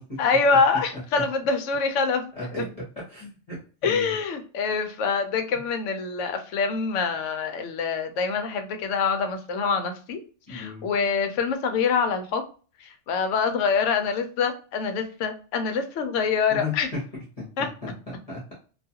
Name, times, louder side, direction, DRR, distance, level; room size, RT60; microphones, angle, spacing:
voice 1, 0.2-2.3 2.6-2.7 3.8-10.2 10.5-12.4 12.8-16.9 17.6-17.7, left 5 dB, 75° left, 6 dB, 0.9 m, -25 dB
voice 2, 3.1-4.1 10.5-10.9 16.5-16.7 17.4-17.9 18.3-18.5, left 3 dB, 35° left, -6 dB, 0.8 m, -35 dB
2.4 x 2.3 x 2.7 m, 0.38 s
omnidirectional pair, 1.3 m